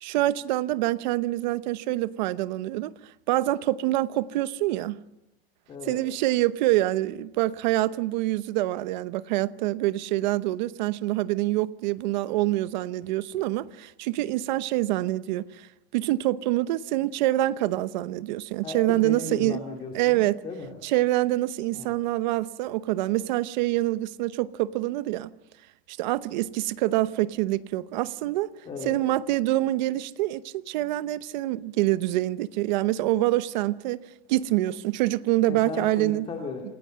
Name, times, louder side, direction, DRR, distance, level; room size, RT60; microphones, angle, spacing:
voice 1, 0.0-2.9 3.3-5.0 5.9-15.7 15.9-19.6 19.9-20.4 20.8-25.3 25.9-28.5 28.8-34.0 34.3-36.3, right 16 dB, 50° right, 0.9 m, -26 dB
voice 2, 5.7-6.0 18.6-20.8 21.7-21.9 28.7-29.0 35.5-36.6, left 4 dB, 15° left, 2.5 m, -36 dB
27.5 x 21.0 x 7.6 m
supercardioid pair, 180°, 30 cm